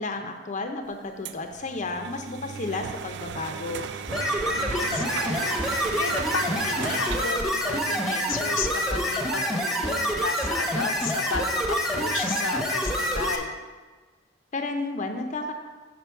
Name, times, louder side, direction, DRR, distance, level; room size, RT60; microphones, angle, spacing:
voice 1, 0.0-3.9 14.5-15.5, left 3 dB, 40° left, 5 dB, 0.5 m, -32 dB
sound 1, 1.2-7.3, right 6 dB, 60° right, 0.4 m, -36 dB
sound 2, 4.1-13.4, equal, ahead, 0.9 m, -27 dB
voice 2, 4.3-13.5, left 5 dB, 85° left, 6 dB, 0.7 m, -34 dB
6.8 x 6.7 x 4.5 m, 1.4 s
head